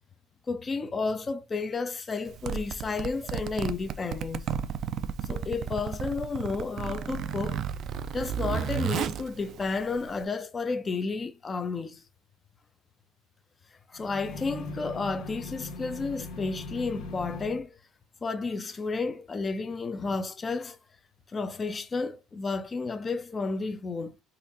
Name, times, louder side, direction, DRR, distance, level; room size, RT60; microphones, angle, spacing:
voice 1, 0.5-4.5 5.2-7.6 8.1-12.0 13.9-17.8 18.2-20.8 21.3-24.1, left 4 dB, 25° left, 0.6 m, -32 dB
Zipper (clothing), 2.3-10.2, right 8 dB, 55° right, 0.3 m, -33 dB
sound 1, 13.9-17.6, left 3 dB, 65° left, 1.0 m, -40 dB
4.2 x 2.5 x 2.6 m
supercardioid pair, 90°, 0 cm